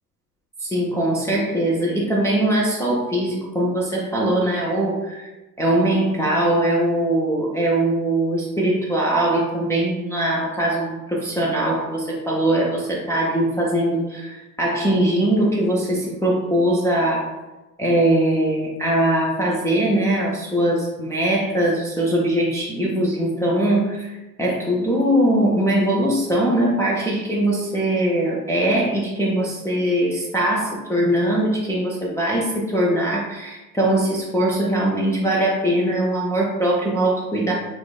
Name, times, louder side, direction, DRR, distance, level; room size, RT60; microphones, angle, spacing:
voice 1, 0.6-5.3 5.6-17.3 17.8-37.5, right 1 dB, 5° left, -6 dB, 0.5 m, -21 dB
6.0 x 2.4 x 2.3 m, 1.1 s
figure-of-eight pair, 75°, 47 cm